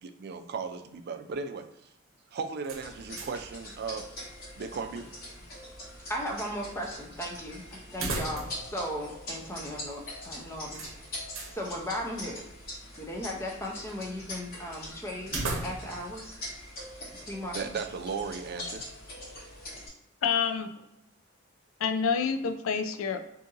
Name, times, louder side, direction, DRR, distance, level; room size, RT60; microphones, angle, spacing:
voice 1, 0.0-1.7 2.3-4.1 4.6-5.1 17.5-18.8, right 5 dB, 50° right, 8 dB, 0.4 m, -36 dB
sound 1, 2.6-3.5 3.8-3.9 7.9-8.7 9.0-9.1 10.7-11.6 15.2-16.1, right 3 dB, 80° right, 0.7 m, -36 dB
sound 2, 2.8-19.9, left 1 dB, 50° left, 1.1 m, -43 dB
voice 2, 6.1-10.8 11.1-11.2 11.5-12.4 12.9-15.3 15.6-16.3 17.2-17.7, equal, 15° left, 0 dB, 0.5 m, -36 dB
voice 3, 20.2-20.7 21.8-23.2, left 6 dB, 85° left, 7 dB, 0.4 m, -28 dB
2.7 x 2.5 x 3.8 m, 0.84 s
head